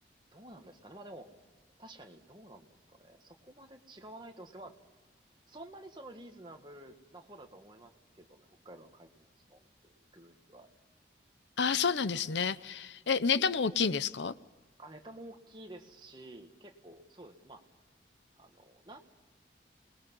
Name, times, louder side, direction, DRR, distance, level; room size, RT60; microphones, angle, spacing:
voice 1, 0.3-1.3 1.8-4.8 5.5-10.7 14.8-17.6 18.4-19.0, right 1 dB, 25° right, 4 dB, 1.8 m, -51 dB
voice 2, 11.6-14.3, left 5 dB, 80° left, 16 dB, 0.7 m, -29 dB
28.0 x 21.0 x 5.5 m, 1.2 s
head